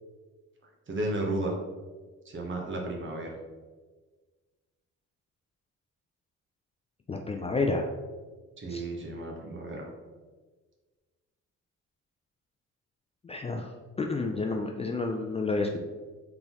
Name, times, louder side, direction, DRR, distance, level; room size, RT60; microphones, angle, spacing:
voice 1, 0.9-1.5 2.2-3.3 8.6-9.9, right 2 dB, 40° right, 1 dB, 1.0 m, -33 dB
voice 2, 7.1-7.9 8.7-8.8 13.2-13.7 14.0-15.8, left 3 dB, 20° left, 2 dB, 0.3 m, -30 dB
3.9 x 3.7 x 2.9 m, 1.3 s
cardioid pair, 90°, 30 cm